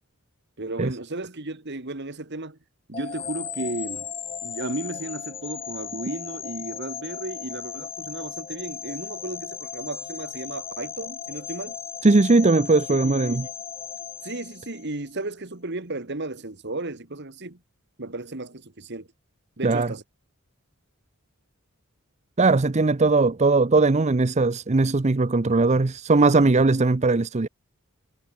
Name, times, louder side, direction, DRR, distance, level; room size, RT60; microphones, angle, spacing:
voice 1, 0.6-2.6 2.9-4.1 4.4-11.8 12.9-13.4 14.2-17.6 18.0-19.1 19.6-20.0, right 2 dB, 50° right, 1.9 m, -34 dB
sound 1, 2.9-15.1, left 7 dB, 25° left, 0.9 m, -36 dB
voice 2, 12.0-13.5 19.6-19.9 22.4-27.5, right 3 dB, 30° right, 0.6 m, -19 dB
head